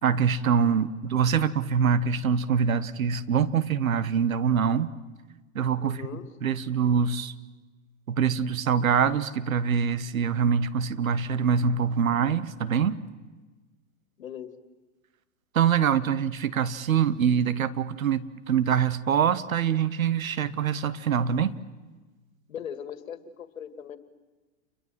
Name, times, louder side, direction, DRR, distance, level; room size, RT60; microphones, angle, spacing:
voice 1, 0.0-4.9 5.5-6.0 6.4-7.3 8.1-13.0 15.5-21.5, right 7 dB, 90° right, 14 dB, 1.4 m, -24 dB
voice 2, 5.8-6.3 14.2-14.5 22.5-24.0, left 8 dB, 85° left, 10 dB, 2.1 m, -39 dB
29.0 x 23.0 x 7.6 m, 1.3 s
hypercardioid pair, 105°, 40 cm